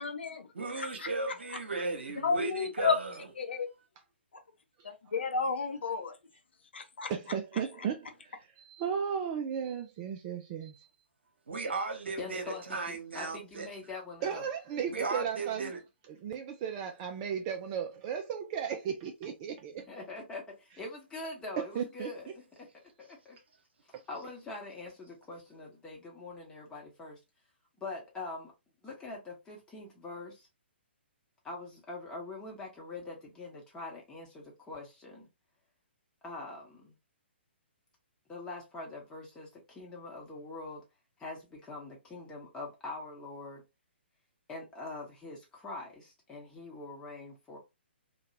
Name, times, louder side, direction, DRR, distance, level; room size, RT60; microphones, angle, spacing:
voice 1, 0.0-0.5 0.8-1.1 2.2-3.0 3.4-3.7 5.1-6.2 6.7-7.1, left 5 dB, 65° left, 0.6 m, -31 dB
voice 2, 0.6-3.3 11.5-13.7 14.9-15.8, right 3 dB, 70° right, 0.9 m, -36 dB
voice 3, 7.1-10.9 14.2-15.7 16.1-19.8 21.8-22.1, right 7 dB, 30° right, 0.3 m, -35 dB
voice 4, 12.2-14.5 19.8-22.7 23.0-23.4 24.1-27.2 27.8-28.5 28.8-30.5 31.4-35.3 36.2-36.9 38.3-40.8 41.2-43.6 44.5-47.6, left 3 dB, 10° left, 1.0 m, -43 dB
2.8 x 2.2 x 2.7 m
figure-of-eight pair, 125°, 6 cm